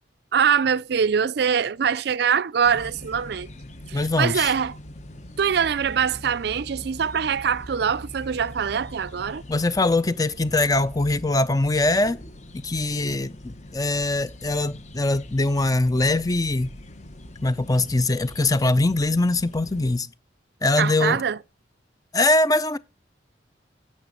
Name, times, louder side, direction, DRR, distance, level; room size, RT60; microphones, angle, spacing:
voice 1, 0.3-3.5 3.9-4.7 5.4-9.4 20.8-21.4, right 7 dB, 60° right, 0.4 m, -23 dB
sound 1, 2.6-20.0, left 1 dB, 40° left, 1.0 m, -42 dB
voice 2, 3.9-4.5 9.5-12.2 12.5-16.7 17.4-20.1 20.6-21.2 22.1-22.8, left 2 dB, 20° left, 0.5 m, -22 dB
10.0 x 7.1 x 5.2 m
head